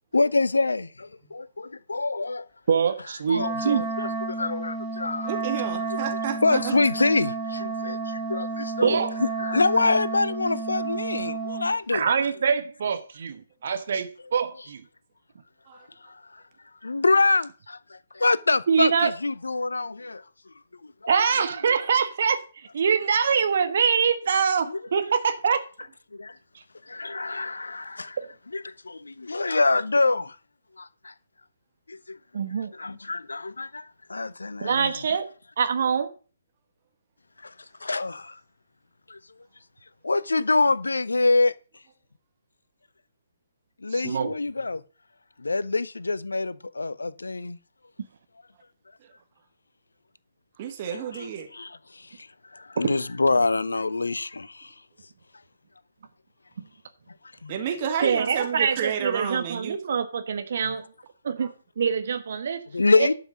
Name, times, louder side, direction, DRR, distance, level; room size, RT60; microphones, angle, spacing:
voice 1, 0.1-2.4 3.3-5.3 6.4-12.1 16.8-20.2 24.7-24.8 26.2-26.3 26.9-28.2 28.5-30.4 30.8-31.1 31.9-32.2 32.7-33.8 34.1-34.9 37.4-37.5 37.8-38.4 39.1-39.2 40.0-41.5 43.8-44.8 45.4-47.6 51.1-52.1 52.5-54.7 57.4-57.6 60.6-60.8 62.7-63.1, left 3 dB, 70° left, 0.7 m, -25 dB
voice 2, 2.7-3.9 8.8-9.2 11.9-14.8 18.7-19.1 21.1-22.4 22.7-25.6 32.3-32.7 34.6-35.3 35.6-36.1 43.9-44.3 52.8-52.9 58.0-60.9 61.2-62.6 63.0-63.1, right 6 dB, 50° right, 1.4 m, -24 dB
Wind instrument woodwind instrument, 3.3-11.7, right 3 dB, 15° right, 2.1 m, -31 dB
voice 3, 5.2-6.8 15.7-15.8 50.6-51.5 57.5-59.8 61.4-61.5, right 8 dB, 35° right, 1.8 m, -30 dB
11.5 x 5.8 x 6.2 m
figure-of-eight pair, 135°, 0 cm